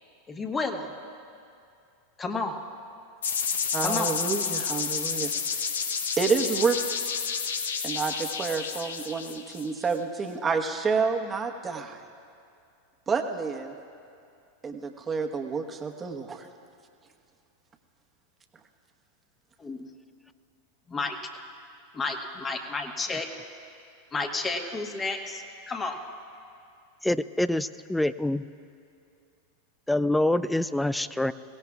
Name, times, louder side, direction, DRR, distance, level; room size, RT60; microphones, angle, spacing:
voice 1, 0.3-0.9 2.2-2.6 3.8-4.1 19.6-19.8 20.9-21.2 21.9-23.3 24.1-26.0, left 3 dB, 25° left, 3 dB, 1.4 m, -31 dB
sound 1, 3.2-9.9, left 6 dB, 80° left, 0.8 m, -30 dB
voice 2, 3.7-5.3 6.2-6.8 7.8-12.0 13.1-13.8 14.6-16.5, right 5 dB, 25° right, 4 dB, 1.2 m, -29 dB
voice 3, 27.0-28.4 29.9-31.3, left 1 dB, 5° left, 15 dB, 0.4 m, -25 dB
22.0 x 17.5 x 2.4 m, 2.4 s
hypercardioid pair, 95°, 0 cm